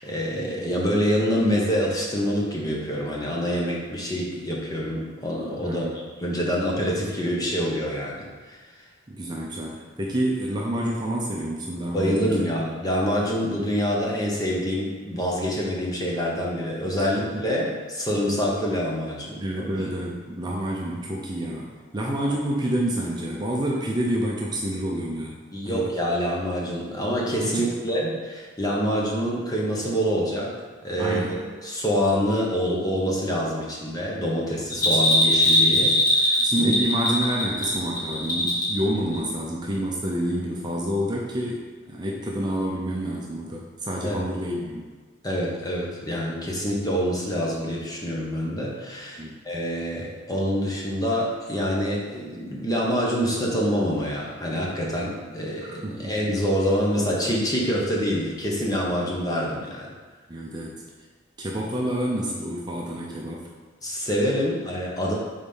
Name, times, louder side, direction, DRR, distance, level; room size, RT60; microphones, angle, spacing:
voice 1, 0.0-8.6 11.9-19.8 25.5-30.6 30.8-31.4 31.6-36.8 44.0-44.2 45.2-59.9 63.8-65.1, equal, 20° left, -3 dB, 0.9 m, -26 dB
voice 2, 5.6-6.0 9.1-12.6 17.2-17.5 19.4-25.4 25.6-25.8 27.4-27.6 31.0-31.4 34.8-35.0 36.4-44.9 49.2-49.3 55.6-56.1 60.3-60.7 61.4-63.5, right 1 dB, 20° right, -3 dB, 0.6 m, -28 dB
Bell, 34.7-38.8 39.1-39.2, left 1 dB, 40° left, 1.9 m, -21 dB
5.1 x 4.1 x 5.5 m, 1.4 s
head